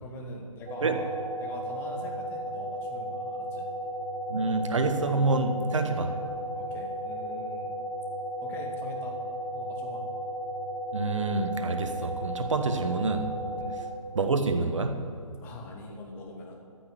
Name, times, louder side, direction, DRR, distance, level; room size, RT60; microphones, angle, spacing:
voice 1, 0.0-3.7 6.5-7.8 8.4-9.2 9.5-10.1 13.6-13.8 15.4-16.6, left 2 dB, 10° left, 1 dB, 1.3 m, -43 dB
sound 1, 0.7-13.8, right 1 dB, 25° right, 2.0 m, -35 dB
voice 2, 4.3-6.2 10.9-13.3 14.1-15.0, right 3 dB, 60° right, 7 dB, 1.4 m, -27 dB
14.0 x 6.2 x 9.5 m, 2.6 s
figure-of-eight pair, 150°, 18 cm